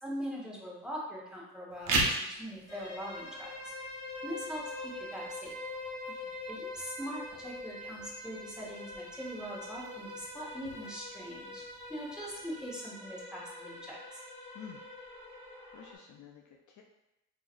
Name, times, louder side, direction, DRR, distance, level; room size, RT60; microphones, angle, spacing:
voice 1, 0.0-3.7 4.2-5.5 6.5-14.2, equal, ahead, -5 dB, 1.4 m, -42 dB
sound 1, 1.7-12.7, right 2 dB, 65° right, 0.9 m, -40 dB
sound 2, 2.7-16.0, left 2 dB, 15° left, 1.5 m, -44 dB
voice 2, 6.1-6.4 14.5-14.9 15.5-16.8, left 7 dB, 55° left, 1 dB, 0.5 m, -51 dB
3.5 x 3.1 x 2.6 m, 0.92 s
hypercardioid pair, 50°, 36 cm